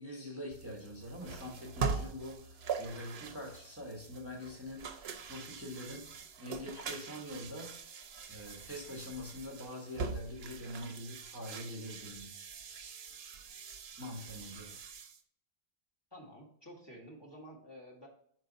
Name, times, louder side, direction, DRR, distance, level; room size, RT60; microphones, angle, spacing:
voice 1, 0.0-4.8 5.3-6.1 6.4-7.7 8.3-12.3 14.0-14.8, left 1 dB, 15° right, -2 dB, 1.3 m, -44 dB
sound 1, 0.5-15.2, right 5 dB, 85° right, 1.0 m, -43 dB
voice 2, 16.1-18.1, equal, 25° left, -3 dB, 1.8 m, -51 dB
6.4 x 4.6 x 3.9 m, 0.66 s
omnidirectional pair, 1.0 m